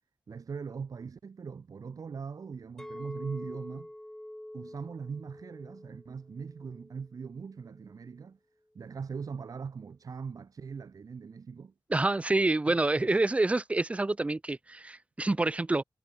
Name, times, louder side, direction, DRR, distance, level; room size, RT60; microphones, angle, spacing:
voice 1, 0.3-3.9 4.5-8.4 8.7-11.7 12.7-13.2, right 5 dB, 50° right, 1.4 m, -41 dB
Chink clink, 2.8-7.1 7.6-8.0, left 1 dB, 5° left, 3.3 m, -46 dB
voice 2, 11.9-15.8, right 2 dB, 15° right, 0.5 m, -27 dB
wide cardioid pair, 155°, 8 cm